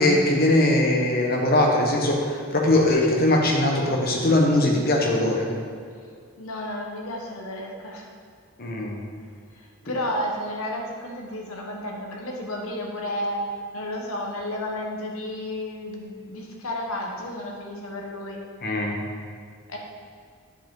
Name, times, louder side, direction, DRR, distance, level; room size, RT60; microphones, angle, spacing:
voice 1, 0.0-5.5 8.6-9.0 18.6-19.0, left 1 dB, 45° left, -1 dB, 1.1 m, -21 dB
voice 2, 6.4-8.1 9.5-13.4 13.7-18.4 19.7-19.8, left 1 dB, 85° left, 0 dB, 1.2 m, -32 dB
10.0 x 5.3 x 3.8 m, 2.1 s
head